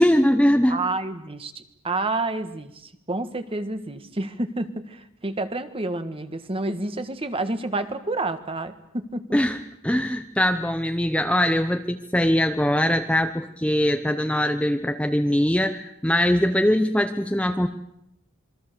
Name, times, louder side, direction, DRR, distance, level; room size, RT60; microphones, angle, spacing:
voice 1, 0.0-0.8 9.3-9.6 9.8-17.7, equal, 5° left, 7 dB, 0.8 m, -21 dB
voice 2, 0.7-9.4, right 2 dB, 25° right, 9 dB, 1.5 m, -29 dB
27.0 x 23.0 x 6.8 m, 0.82 s
head